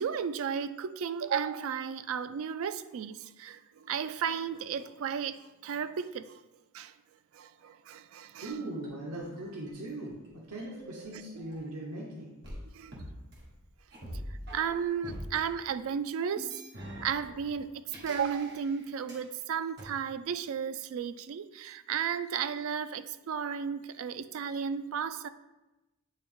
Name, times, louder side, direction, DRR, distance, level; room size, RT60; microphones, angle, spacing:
voice 1, 0.0-5.4 5.6-6.4 6.7-6.9 7.3-8.5 12.7-13.0 14.5-16.5 16.8-17.7 18.0-25.3, right 7 dB, 70° right, 0.3 m, -34 dB
voice 2, 8.4-12.4, right 2 dB, 90° right, 0.9 m, -40 dB
sound 1, 8.5-12.0 12.4-15.4 16.4-19.3 19.8-19.9, equal, 50° right, 1.4 m, -46 dB
8.9 x 3.4 x 3.6 m
head